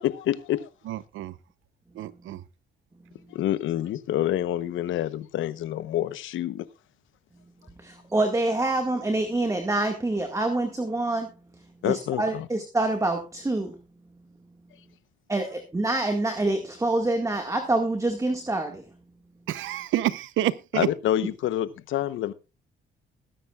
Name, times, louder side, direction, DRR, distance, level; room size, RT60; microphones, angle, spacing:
voice 1, 0.0-0.7 3.3-6.6 11.8-12.5 20.7-22.3, left 12 dB, 80° left, 1.0 m, -27 dB
voice 2, 0.9-1.3 2.0-2.4 19.5-20.9, right 13 dB, 80° right, 0.8 m, -28 dB
voice 3, 7.8-11.3 11.8-13.7 15.3-18.8, right 2 dB, 15° right, 1.9 m, -26 dB
20.5 x 10.0 x 2.4 m
cardioid pair, 90°, 20 cm